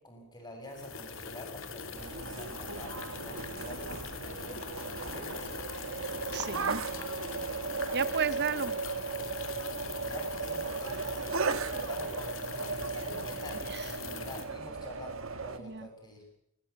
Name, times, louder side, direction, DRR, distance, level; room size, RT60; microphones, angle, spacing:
voice 1, 0.0-5.6 10.0-16.2, left 1 dB, 20° left, 3 dB, 7.8 m, -47 dB
sound 1, 0.7-14.4, left 5 dB, 65° left, 2.7 m, -42 dB
sound 2, 1.9-15.6, right 4 dB, 70° right, 1.5 m, -36 dB
voice 2, 6.3-7.0 7.9-8.7 13.7-13.9 15.6-15.9, right 6 dB, 50° right, 15 dB, 1.1 m, -33 dB
20.0 x 19.0 x 8.8 m, 0.77 s
head